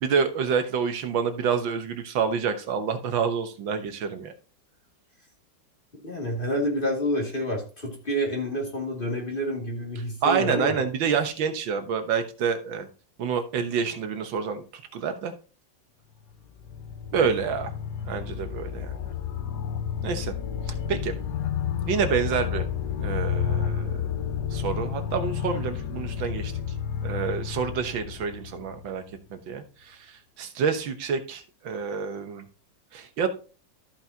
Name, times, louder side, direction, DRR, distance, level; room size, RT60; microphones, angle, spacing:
voice 1, 0.0-4.3 10.2-12.9 13.2-14.6 14.9-15.3 17.1-17.7 18.1-19.0 20.0-20.3 20.9-21.1 21.9-22.7 23.0-26.5 27.0-29.0 29.3-32.5 32.9-33.3, right 6 dB, 90° right, 7 dB, 1.9 m, -28 dB
voice 2, 6.0-10.7, equal, 25° left, -1 dB, 2.6 m, -28 dB
sound 1, 16.3-29.1, left 8 dB, 65° left, 1.2 m, -31 dB
13.5 x 5.9 x 2.8 m, 0.36 s
omnidirectional pair, 2.0 m